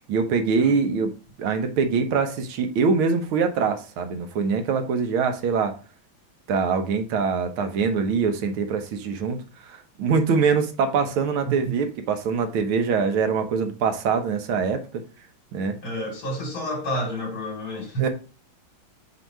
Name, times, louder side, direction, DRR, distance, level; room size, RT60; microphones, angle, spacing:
voice 1, 0.1-1.1 1.4-5.8 6.5-15.0 15.5-15.8 18.0-18.1, right 5 dB, 85° right, 1.8 m, -24 dB
voice 2, 15.8-18.1, equal, 75° left, 3.8 m, -30 dB
7.7 x 2.9 x 4.6 m
omnidirectional pair, 2.2 m